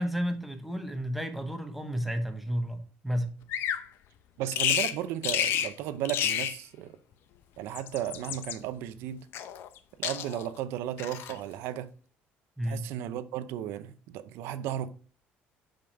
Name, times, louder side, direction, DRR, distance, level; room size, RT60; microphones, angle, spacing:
voice 1, 0.0-3.3 12.6-12.8, equal, 5° right, 1.0 m, -32 dB
Bird vocalization bird call bird song, 3.5-3.9 4.5-5.0 5.2-5.7 6.0-6.6 7.6-8.6 9.3-9.8 10.0-10.5 11.0-11.4, left 10 dB, 65° left, 0.7 m, -30 dB
voice 2, 4.4-6.9 7.6-9.3 10.0-11.9 12.7-14.9, right 11 dB, 80° right, 0.7 m, -34 dB
5.7 x 5.1 x 5.2 m
cardioid pair, 110°, 4 cm